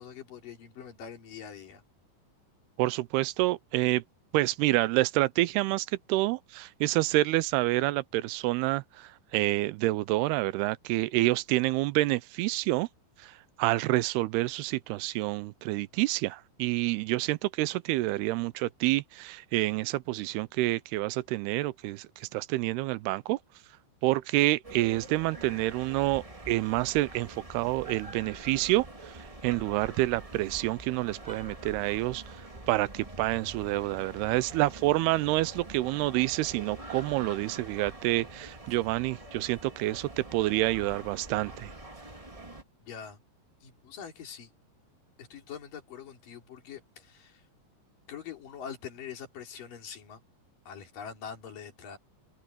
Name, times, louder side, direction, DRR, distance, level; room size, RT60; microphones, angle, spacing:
voice 1, 0.0-1.8 42.9-43.2 43.6-44.5 45.2-47.4 48.1-50.2 50.7-52.0, left 7 dB, 60° left, 5.4 m, -44 dB
voice 2, 2.8-4.0 4.3-12.9 13.2-13.3 13.6-23.4 24.0-29.1 29.4-32.2 32.7-41.7, right 18 dB, 85° right, 2.7 m, -28 dB
sound 1, 24.6-42.6, right 2 dB, 55° right, 0.4 m, -45 dB
omnidirectional pair, 4.6 m